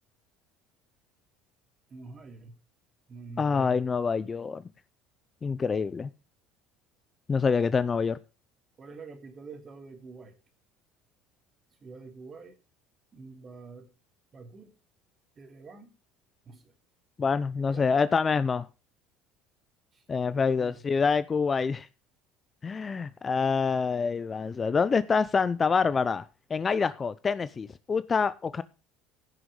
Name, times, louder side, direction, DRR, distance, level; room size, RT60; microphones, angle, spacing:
voice 1, 1.9-2.6 3.1-3.8 8.8-10.3 11.8-12.5 13.1-13.9 14.3-14.7 15.4-15.9 16.5-16.7 17.7-17.9 19.9-20.0 20.3-20.7, right 4 dB, 30° right, 2.8 m, -46 dB
voice 2, 3.4-4.6 5.4-6.1 7.3-8.2 17.2-18.7 20.1-21.9 22.6-28.6, left 5 dB, 25° left, 0.5 m, -26 dB
15.5 x 6.3 x 4.8 m
supercardioid pair, 110°, 0 cm